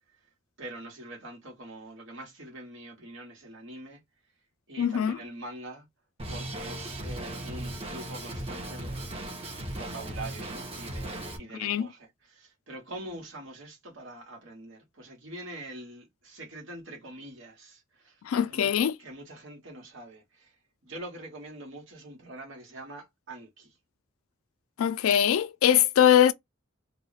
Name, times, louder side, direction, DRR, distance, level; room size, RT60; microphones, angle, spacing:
voice 1, 0.6-4.0 4.7-5.9 6.3-9.2 9.7-18.2 18.5-18.7 19.0-20.5 20.8-23.7, right 1 dB, 65° right, 1.2 m, -44 dB
voice 2, 4.8-5.2 11.6-11.9 18.2-19.0 24.8-26.3, left 10 dB, 80° left, 0.3 m, -22 dB
Drum kit, 6.2-11.4, right 1 dB, 30° right, 0.8 m, -37 dB
2.3 x 2.1 x 3.8 m
head